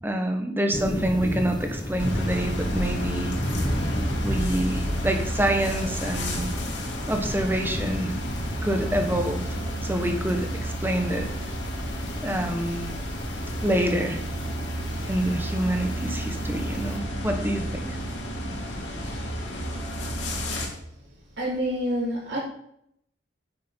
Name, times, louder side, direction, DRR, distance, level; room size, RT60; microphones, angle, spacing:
voice 1, 0.0-3.3 4.2-6.5 7.1-8.1 8.6-9.4 9.8-11.5 12.2-12.9 13.6-14.2 15.0-18.0, right 1 dB, 10° right, 5 dB, 1.3 m, -27 dB
sound 1, 0.7-17.0, left 1 dB, 25° left, 1.1 m, -35 dB
sound 2, 2.0-20.7, equal, 80° left, 3.0 m, -31 dB
voice 2, 21.4-22.4, equal, 80° right, -11 dB, 4.3 m, -27 dB
9.6 x 9.0 x 4.6 m, 0.72 s
head